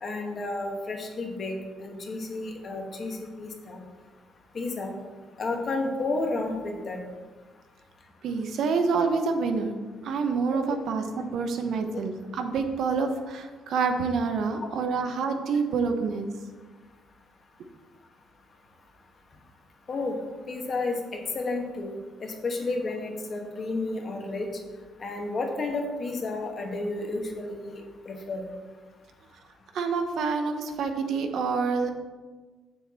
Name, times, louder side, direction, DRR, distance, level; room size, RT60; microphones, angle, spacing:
voice 1, 0.0-3.8 4.5-4.9 5.4-7.0 19.9-20.1 20.5-21.0 21.3-21.9 22.2-24.5 25.0-28.4, left 2 dB, 35° left, 3 dB, 1.1 m, -31 dB
voice 2, 8.2-9.7 10.0-16.3 29.7-31.9, right 5 dB, 60° right, 6 dB, 0.8 m, -27 dB
7.9 x 7.0 x 4.1 m, 1.4 s
cardioid pair, 170°, 0 cm